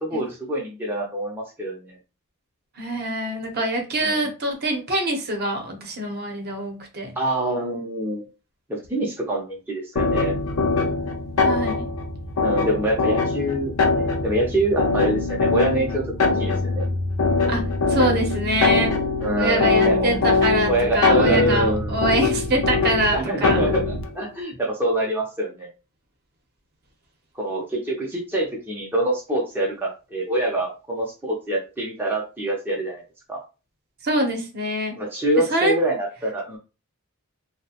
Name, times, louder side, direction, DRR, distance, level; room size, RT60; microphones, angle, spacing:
voice 1, 0.0-2.0 4.0-4.3 7.2-8.2 8.7-10.4 12.4-16.0 16.3-16.8 19.2-20.1 20.7-22.0 23.1-25.7 27.3-33.0 33.3-33.4 35.0-36.6, right 1 dB, 10° right, -3 dB, 0.5 m, -25 dB
voice 2, 2.8-7.1 11.4-11.9 17.5-19.0 19.4-23.6 34.0-35.0 35.5-35.7, right 1 dB, 45° right, 3 dB, 0.7 m, -24 dB
sound 1, 10.0-24.1, left 3 dB, 65° left, 0.5 m, -22 dB
2.7 x 2.0 x 2.8 m, 0.31 s
head